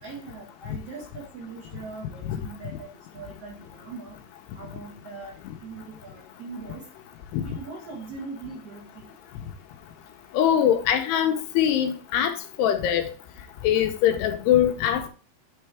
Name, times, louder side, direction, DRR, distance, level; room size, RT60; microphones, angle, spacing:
voice 1, 0.0-4.2 4.5-6.9 7.4-9.1, right 4 dB, 55° right, 1.8 m, -41 dB
voice 2, 10.3-13.1 13.6-15.1, left 10 dB, 80° left, 2.8 m, -22 dB
9.5 x 4.5 x 3.4 m
omnidirectional pair, 4.8 m